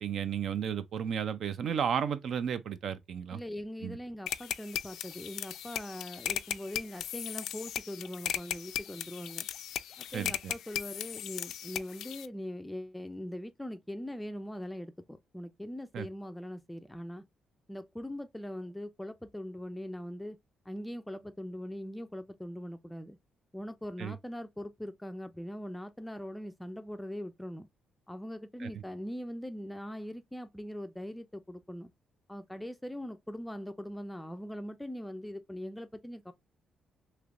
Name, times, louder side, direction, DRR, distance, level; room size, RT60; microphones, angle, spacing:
voice 1, 0.0-3.4 3.8-4.0 10.1-10.3 15.9-16.1 24.0-24.1 28.6-28.7, right 8 dB, 65° right, 0.5 m, -33 dB
voice 2, 3.3-9.5 10.0-17.2 17.7-20.4 20.7-23.2 23.5-27.7 28.1-31.9 32.3-36.3, equal, 5° left, 0.4 m, -41 dB
sound 1, 4.3-12.3, left 11 dB, 75° left, 0.3 m, -37 dB
3.3 x 2.9 x 2.4 m
cardioid pair, 90°, 0 cm